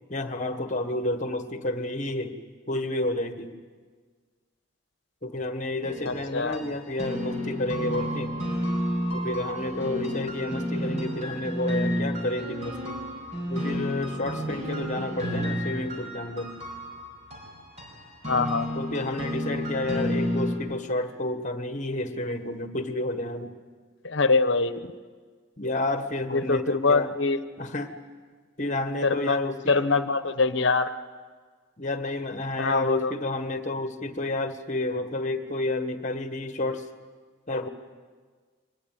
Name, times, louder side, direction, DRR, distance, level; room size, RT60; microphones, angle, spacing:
voice 1, 0.1-2.4 2.7-3.5 5.2-8.3 9.1-13.0 13.5-16.5 18.7-23.5 25.6-27.1 27.6-27.9 28.6-29.8 31.8-36.9 37.5-37.7, left 2 dB, 35° left, 8 dB, 1.5 m, -30 dB
sound 1, 5.8-20.6, equal, 35° right, 5.5 m, -31 dB
voice 2, 6.0-6.6 18.3-18.7 24.0-24.9 26.3-27.4 29.0-29.4 29.7-30.9 32.6-33.1, left 4 dB, 60° left, 11 dB, 1.1 m, -24 dB
24.5 x 20.0 x 8.9 m, 1.5 s
head